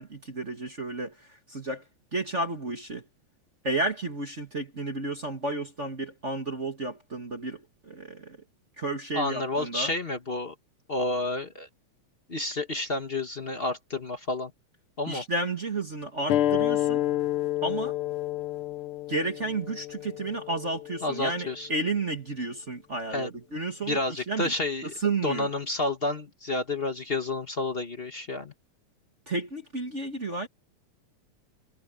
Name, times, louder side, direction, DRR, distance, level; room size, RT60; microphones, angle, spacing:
voice 1, 0.0-1.8 2.1-3.1 3.6-8.4 8.8-9.9 15.1-17.0 17.6-18.0 19.1-24.5 24.8-25.5 29.3-30.5, right 2 dB, 30° right, 1.7 m, -32 dB
voice 2, 9.1-10.5 10.9-11.7 12.3-14.5 15.0-15.2 21.0-21.7 23.1-23.3 23.9-24.9 25.2-28.5, left 2 dB, 40° left, 0.8 m, -30 dB
sound 1, 16.3-21.4, left 13 dB, 75° left, 1.2 m, -29 dB
omnidirectional pair, 3.3 m